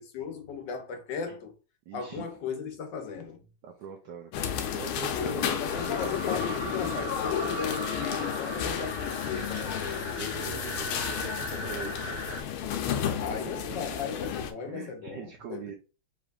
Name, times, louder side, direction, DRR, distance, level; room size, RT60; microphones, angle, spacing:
voice 1, 0.1-1.5 1.9-3.4 4.3-4.4 5.0-9.8 13.2-15.6, left 6 dB, 60° left, 1.5 m, -36 dB
voice 2, 1.9-2.3 3.6-4.3 4.7-5.7 7.2-7.5 10.1-12.5 13.1-13.9 14.7-15.7, right 6 dB, 70° right, 1.1 m, -42 dB
sound 1, 4.3-14.5, left 9 dB, 80° left, 1.5 m, -32 dB
sound 2, 5.6-12.4, right 1 dB, 20° left, 0.7 m, -38 dB
5.0 x 4.0 x 2.5 m
omnidirectional pair, 2.4 m